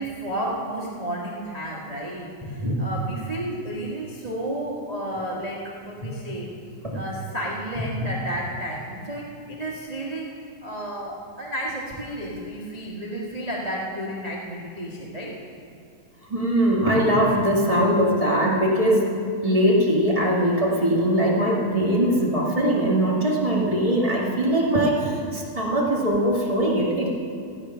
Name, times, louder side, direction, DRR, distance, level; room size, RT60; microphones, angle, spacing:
voice 1, 0.0-5.6 5.9-6.5 6.9-10.3 10.6-15.3, right 1 dB, 40° right, -4 dB, 0.5 m, -32 dB
voice 2, 2.4-2.8 6.8-7.0 8.0-8.1 16.3-19.1 19.4-27.1, right 1 dB, 15° right, -5 dB, 1.2 m, -21 dB
16.0 x 8.8 x 5.7 m, 2.3 s
omnidirectional pair, 3.6 m